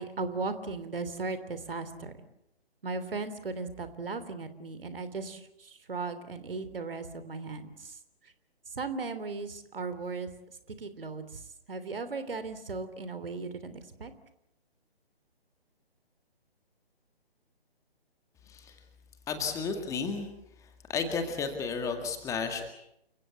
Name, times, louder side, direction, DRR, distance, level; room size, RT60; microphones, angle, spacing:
voice 1, 0.0-2.2 2.8-8.0 8.7-10.3 10.8-11.4 11.7-14.1, right 4 dB, 60° right, 11 dB, 3.3 m, -37 dB
voice 2, 19.3-20.3 20.6-22.7, left 5 dB, 10° left, 6 dB, 2.0 m, -33 dB
29.5 x 17.0 x 8.2 m, 0.81 s
figure-of-eight pair, 140°, 31 cm